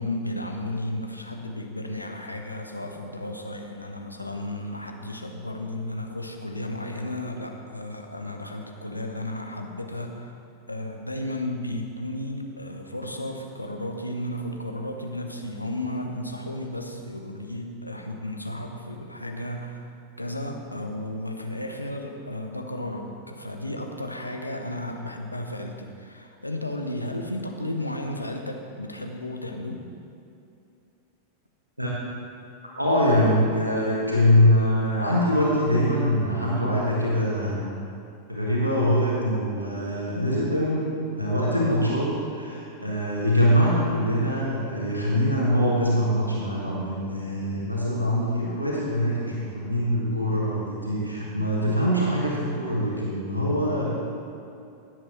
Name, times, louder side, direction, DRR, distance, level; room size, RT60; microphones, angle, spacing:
voice 1, 0.0-10.4 10.7-29.8, left 1 dB, 85° left, 3 dB, 0.9 m, -33 dB
voice 2, 32.8-37.6 38.3-42.1 42.3-54.0, equal, 85° right, -5 dB, 1.6 m, -23 dB
16.5 x 7.7 x 3.2 m, 2.6 s
figure-of-eight pair, 90°, 0 cm